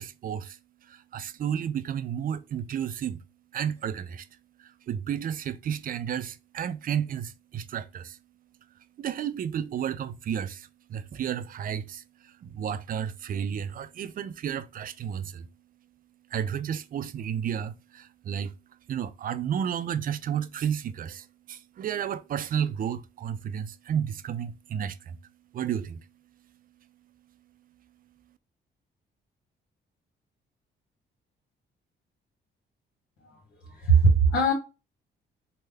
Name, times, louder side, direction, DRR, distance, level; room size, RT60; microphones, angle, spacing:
voice 1, 0.0-3.2 3.5-4.3 4.6-8.2 9.0-15.5 16.3-18.5 18.9-25.2 25.5-26.0, right 8 dB, 45° right, 0.4 m, -32 dB
voice 2, 33.6-34.5, right 3 dB, 80° left, 1.2 m, -20 dB
3.3 x 2.1 x 3.3 m
cardioid pair, 90°, 20 cm